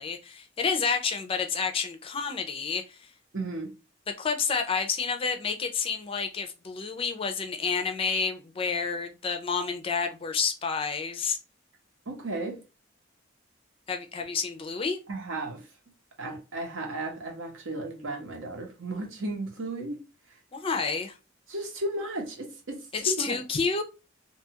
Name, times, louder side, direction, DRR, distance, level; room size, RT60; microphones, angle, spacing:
voice 1, 0.0-3.1 4.1-11.4 13.9-15.0 20.5-21.2 22.9-23.8, left 5 dB, 30° left, 0.3 m, -29 dB
voice 2, 3.3-3.7 12.1-12.6 15.1-15.6 16.2-20.0 21.5-23.4, right 2 dB, 85° right, 0.9 m, -34 dB
2.6 x 2.3 x 2.7 m
head